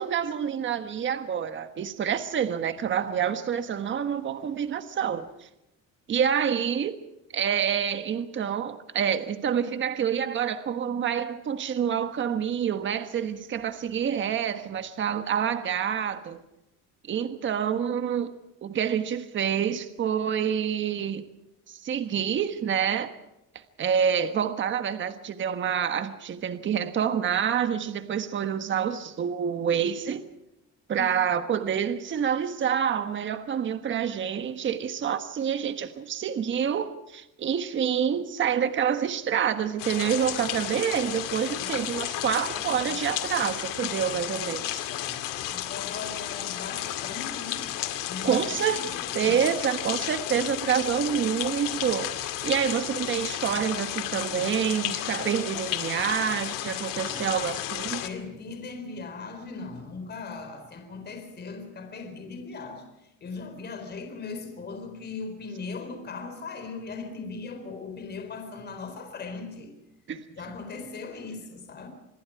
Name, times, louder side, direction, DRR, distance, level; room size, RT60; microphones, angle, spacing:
voice 1, 0.0-5.5 6.1-7.0 7.3-16.4 17.1-18.3 18.6-21.3 21.7-23.2 23.8-30.3 30.9-44.8 48.2-48.8 49.1-58.0 70.1-70.3, right 8 dB, 35° right, 1.4 m, -27 dB
sound 1, 39.8-58.1, left 13 dB, 85° left, 2.3 m, -33 dB
voice 2, 41.6-43.0 44.1-44.5 44.9-47.8 48.1-49.4 56.9-57.3 58.0-69.7 70.3-71.9, left 4 dB, 30° left, 4.2 m, -39 dB
27.0 x 21.0 x 4.8 m
cardioid pair, 165°, 32 cm